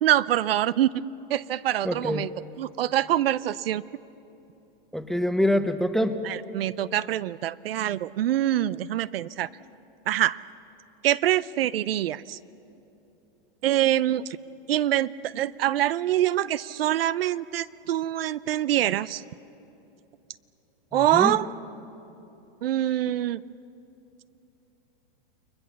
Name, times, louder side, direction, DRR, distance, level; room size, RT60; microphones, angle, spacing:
voice 1, 0.0-0.9 1.3-2.3 2.6-3.8 6.2-9.5 10.1-10.4 11.0-12.4 13.6-14.3 14.7-19.2 20.9-21.5 22.6-23.4, right 12 dB, 80° right, 18 dB, 0.6 m, -25 dB
voice 2, 1.8-2.2 4.9-6.2 20.9-21.4, left 1 dB, ahead, 10 dB, 0.8 m, -25 dB
29.5 x 21.0 x 7.1 m, 2.9 s
hypercardioid pair, 135°, 29 cm